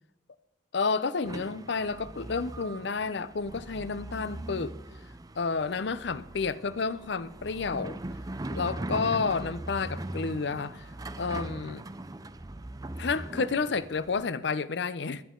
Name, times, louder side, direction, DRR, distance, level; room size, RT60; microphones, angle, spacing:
voice 1, 0.7-4.7 5.4-8.0 8.5-10.9 11.2-11.8 13.0-15.2, left 4 dB, 60° left, 0.6 m, -30 dB
sound 1, 1.2-14.2, right 1 dB, 20° right, 0.5 m, -40 dB
22.5 x 9.2 x 3.8 m
head